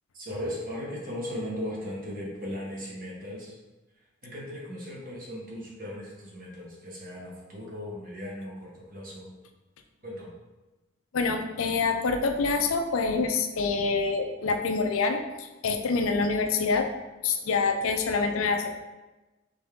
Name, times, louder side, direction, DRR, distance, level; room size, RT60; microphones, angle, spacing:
voice 1, 0.1-3.5 4.2-9.3 10.0-10.3, equal, 40° right, -3 dB, 1.1 m, -37 dB
voice 2, 11.1-16.9 17.2-18.7, left 4 dB, 80° left, 5 dB, 0.5 m, -26 dB
3.9 x 3.3 x 3.6 m, 1.1 s
head